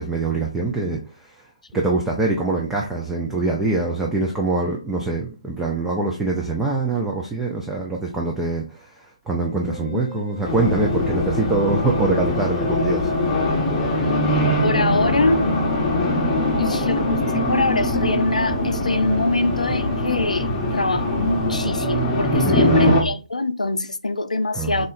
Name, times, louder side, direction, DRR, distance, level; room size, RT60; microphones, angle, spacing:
voice 1, 0.0-1.3 1.7-13.1 22.4-23.1 24.5-24.9, right 3 dB, 5° right, 0.5 m, -24 dB
Wind instrument woodwind instrument, 9.6-17.4, left 5 dB, 55° right, 1.9 m, -42 dB
voice 2, 9.7-10.2 13.7-14.3 14.6-15.5 16.6-24.9, left 2 dB, 80° left, 0.6 m, -24 dB
Race car auto racing, 10.4-23.0, left 1 dB, 15° left, 1.0 m, -22 dB
3.7 x 3.2 x 3.9 m
figure-of-eight pair, 140°, 4 cm